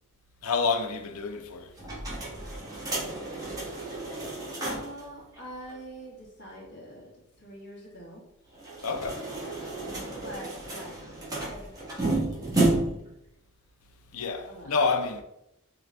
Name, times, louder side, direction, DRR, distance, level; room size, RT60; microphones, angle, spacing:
voice 1, 0.4-1.7 8.8-9.3 14.1-15.2, left 4 dB, 85° left, 0.6 m, -28 dB
sound 1, 1.8-5.0 5.3-5.4 5.7-5.8 8.5-13.1, right 2 dB, 15° right, 1.1 m, -31 dB
voice 2, 4.5-7.1 7.4-8.2 10.0-11.0 11.4-11.6 11.9-12.9 14.5-14.7, right 1 dB, 55° left, 1.5 m, -45 dB
3.9 x 3.3 x 3.2 m
head